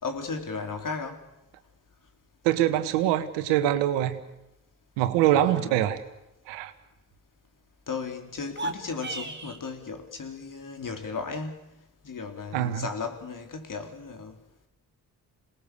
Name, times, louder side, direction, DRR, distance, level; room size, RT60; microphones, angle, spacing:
voice 1, 0.0-1.2 5.4-5.9 7.9-11.7 12.0-14.4, left 4 dB, 45° left, 5 dB, 4.0 m, -35 dB
voice 2, 2.4-4.2 5.0-6.0 6.5-6.7 12.5-12.9, right 12 dB, 85° right, 11 dB, 1.4 m, -24 dB
sound 1, 8.4-9.6, right 2 dB, 25° right, 2.7 m, -35 dB
27.5 x 19.5 x 7.0 m, 0.90 s
hypercardioid pair, 45°, 43 cm